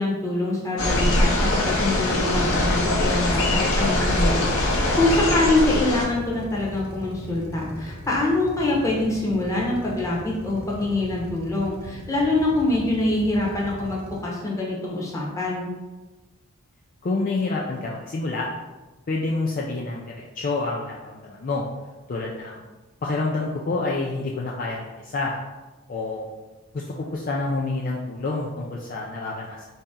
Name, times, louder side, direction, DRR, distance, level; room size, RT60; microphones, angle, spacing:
voice 1, 0.0-1.3 1.6-10.2 10.4-15.7, left 2 dB, 15° left, -4 dB, 0.9 m, -24 dB
sound 1, 0.8-6.1, left 1 dB, 65° left, 0.8 m, -22 dB
Drill, 2.2-14.2, equal, 45° right, 1.1 m, -39 dB
voice 2, 17.0-18.5 19.1-21.6 22.1-22.6 23.0-25.4 25.9-26.2 26.7-29.6, left 3 dB, 40° left, -3 dB, 0.4 m, -28 dB
4.3 x 2.7 x 3.6 m, 1.2 s
head